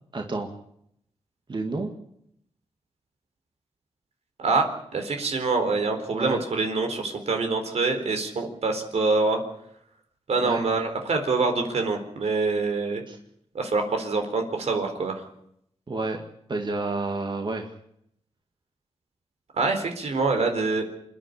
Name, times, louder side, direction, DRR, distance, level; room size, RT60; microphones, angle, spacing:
voice 1, 0.1-0.5 1.5-1.9 6.1-6.4 10.4-10.6 13.1-13.2 15.9-17.7, right 3 dB, 45° right, 3 dB, 2.1 m, -30 dB
voice 2, 4.4-9.4 10.3-13.0 13.5-15.3 19.5-20.8, right 3 dB, 75° right, 5 dB, 4.1 m, -25 dB
28.0 x 10.5 x 10.0 m, 0.74 s
wide cardioid pair, 100°, 11 cm